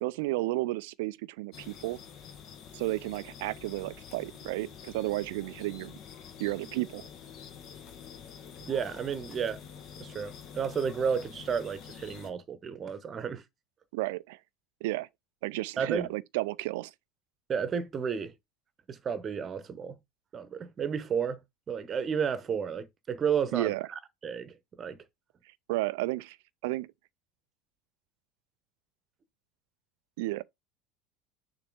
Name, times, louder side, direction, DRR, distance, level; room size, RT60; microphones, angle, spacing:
voice 1, 0.0-2.0 2.7-6.0 6.4-7.1 13.9-14.4 14.8-15.1 15.4-16.9 23.5-23.9 25.7-26.4 26.6-26.9 30.2-30.4, right 19 dB, 60° right, 0.4 m, -32 dB
sound 1, 1.5-12.3, left 7 dB, 45° left, 1.3 m, -47 dB
voice 2, 8.6-9.6 10.0-13.4 15.8-16.1 17.5-18.3 18.9-19.9 20.3-25.0, right 7 dB, 30° right, 1.0 m, -32 dB
6.9 x 2.9 x 4.7 m
figure-of-eight pair, 75°, 0 cm